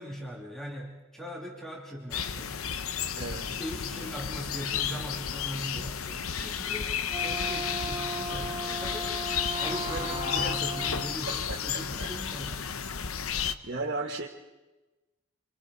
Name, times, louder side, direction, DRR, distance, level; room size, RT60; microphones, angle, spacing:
voice 1, 0.0-2.6 3.2-9.1 9.6-12.7, equal, ahead, -2 dB, 3.1 m, -40 dB
sound 1, 2.1-13.5, left 7 dB, 85° left, 0.9 m, -32 dB
voice 2, 3.2-3.6 11.3-11.6 12.0-12.1 13.2-14.3, right 3 dB, 50° right, -2 dB, 1.4 m, -36 dB
Wind instrument woodwind instrument, 7.0-11.2, right 2 dB, 25° right, 0.6 m, -37 dB
27.0 x 26.5 x 4.2 m, 1.1 s
head